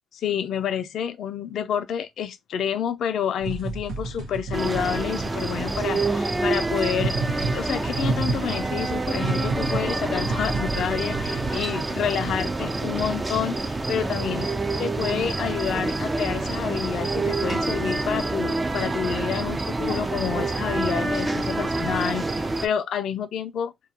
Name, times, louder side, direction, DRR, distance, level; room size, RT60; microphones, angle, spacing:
voice 1, 0.1-7.2 7.5-14.5 14.8-23.7, left 8 dB, 70° left, 0.4 m, -29 dB
sound 1, 3.4-11.6, right 3 dB, 85° right, 1.0 m, -31 dB
sound 2, 4.5-22.7, right 2 dB, 20° right, 0.4 m, -27 dB
2.3 x 2.2 x 2.8 m
cardioid pair, 90°, 0 cm